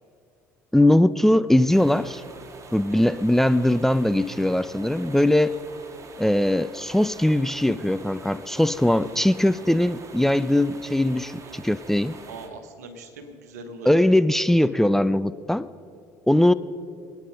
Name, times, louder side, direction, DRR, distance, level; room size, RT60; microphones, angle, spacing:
voice 1, 0.7-2.2 2.7-5.5 6.2-12.2 13.9-15.7 16.3-16.5, left 1 dB, 5° left, 14 dB, 0.5 m, -20 dB
sound 1, 1.7-12.5, right 3 dB, 40° right, 2.0 m, -45 dB
voice 2, 2.9-3.2 9.0-9.3 11.4-11.6 12.3-14.1, right 3 dB, 80° right, 7 dB, 1.5 m, -42 dB
24.5 x 9.6 x 5.1 m, 2.5 s
hypercardioid pair, 60°, 9 cm